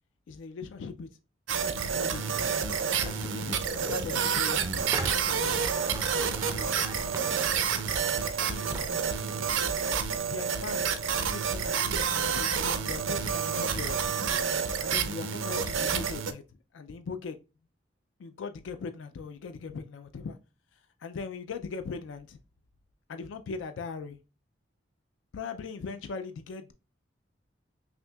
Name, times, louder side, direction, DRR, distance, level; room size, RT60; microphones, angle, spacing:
voice 1, 0.3-1.1 1.7-2.4 2.8-5.7 6.4-6.9 8.2-9.8 10.2-10.9 11.3-14.0 14.8-16.4 16.7-17.4 18.2-20.4 21.0-22.4 23.1-24.2 25.3-26.7, left 5 dB, 80° left, 0.3 m, -40 dB
sound 1, 1.5-16.3, right 7 dB, 85° right, 0.5 m, -29 dB
sound 2, 2.0-9.7, right 2 dB, 15° right, 0.3 m, -42 dB
5.8 x 2.7 x 2.2 m
head